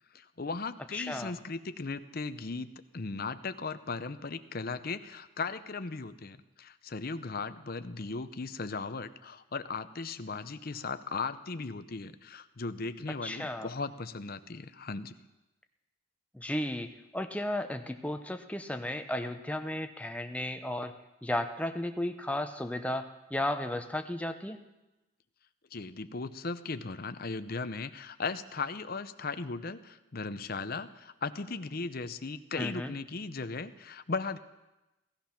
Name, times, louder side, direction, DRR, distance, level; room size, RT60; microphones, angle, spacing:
voice 1, 0.1-15.1 25.7-34.4, left 4 dB, 45° left, 11 dB, 0.7 m, -37 dB
voice 2, 0.9-1.3 13.2-13.7 16.3-20.9 21.2-24.6 32.6-32.9, left 1 dB, 5° left, 7 dB, 0.7 m, -34 dB
17.5 x 14.0 x 5.8 m, 1.0 s
head